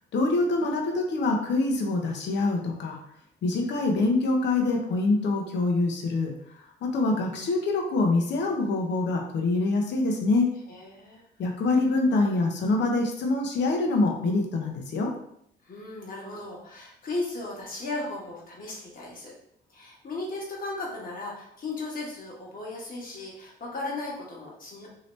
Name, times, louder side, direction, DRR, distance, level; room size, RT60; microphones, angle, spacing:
voice 1, 0.1-3.0 3.4-6.3 6.8-10.5 11.4-15.1, left 3 dB, 60° left, 1 dB, 0.7 m, -25 dB
voice 2, 10.7-11.2 15.6-19.3 19.7-24.9, left 2 dB, 45° left, -3 dB, 1.3 m, -36 dB
2.9 x 2.8 x 3.1 m, 0.71 s
cardioid pair, 90°, 20 cm